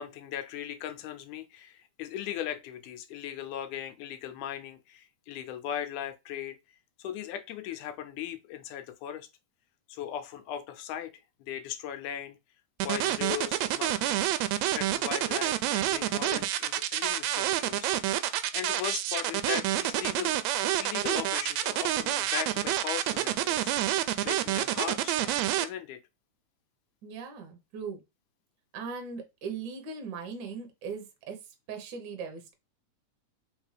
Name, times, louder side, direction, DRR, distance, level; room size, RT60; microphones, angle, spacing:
voice 1, 0.0-6.6 7.0-9.3 9.9-11.1 11.5-12.4 12.8-14.2 14.7-18.2 18.5-20.3 20.8-23.8 24.2-26.0, left 10 dB, 85° left, 2.1 m, -38 dB
sound 1, 12.8-25.6, right 13 dB, 80° right, 1.7 m, -28 dB
voice 2, 27.0-28.0 28.7-31.4 31.7-32.5, right 5 dB, 65° right, 1.1 m, -39 dB
4.3 x 3.6 x 3.2 m
omnidirectional pair, 3.5 m